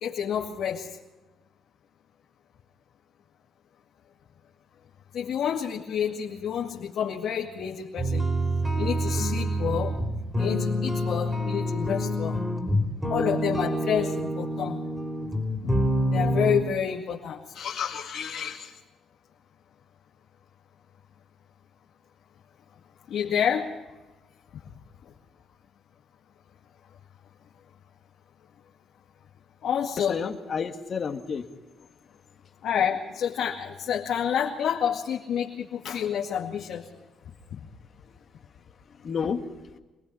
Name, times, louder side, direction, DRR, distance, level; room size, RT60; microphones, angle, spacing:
voice 1, 0.0-0.9 5.1-8.3 8.8-10.0 10.4-12.4 13.1-14.8 15.6-15.8 16.1-18.8 23.1-23.8 29.6-30.2 32.6-36.9 37.5-37.6, left 8 dB, 75° left, -2 dB, 2.2 m, -29 dB
sound 1, 8.0-16.6, equal, 10° right, 3.9 m, -27 dB
voice 2, 30.0-31.5 39.0-39.8, left 6 dB, 50° left, 5 dB, 2.0 m, -31 dB
26.5 x 19.0 x 5.6 m, 1.1 s
cardioid pair, 90°, 0 cm